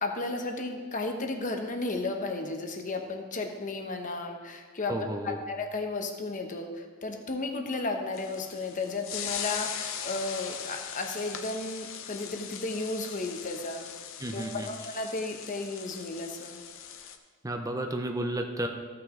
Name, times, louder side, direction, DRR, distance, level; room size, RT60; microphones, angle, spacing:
voice 1, 0.0-13.9 14.3-16.6, left 3 dB, 35° left, 4 dB, 0.9 m, -34 dB
voice 2, 4.9-5.4 14.2-14.7 17.4-18.7, right 1 dB, 15° right, 4 dB, 0.6 m, -32 dB
sound 1, 8.1-17.2, left 8 dB, 65° left, 0.7 m, -40 dB
15.0 x 5.9 x 3.8 m, 1.5 s
head